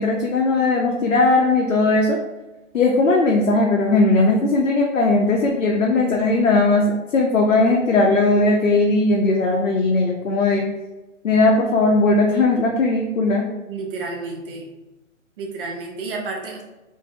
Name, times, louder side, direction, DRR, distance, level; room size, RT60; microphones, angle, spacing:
voice 1, 0.0-2.2 2.7-10.6 11.2-13.4, left 2 dB, 90° left, 0 dB, 0.5 m, -18 dB
voice 2, 13.7-14.7 15.4-16.6, right 3 dB, 45° right, 0 dB, 0.7 m, -31 dB
3.3 x 2.5 x 2.2 m, 1.1 s
figure-of-eight pair, 125°, 39 cm